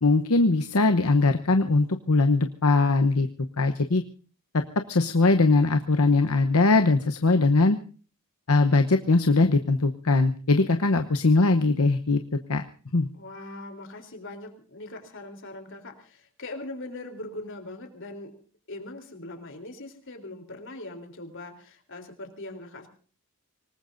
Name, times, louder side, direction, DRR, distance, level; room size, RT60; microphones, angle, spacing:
voice 1, 0.0-3.3 3.6-4.0 4.5-4.6 4.9-7.8 8.5-12.2 12.5-12.6 12.9-13.1, left 3 dB, 75° left, 7 dB, 0.9 m, -21 dB
voice 2, 13.2-18.4 18.7-22.9, left 2 dB, 60° left, 5 dB, 3.5 m, -41 dB
26.0 x 19.0 x 2.6 m, 0.40 s
head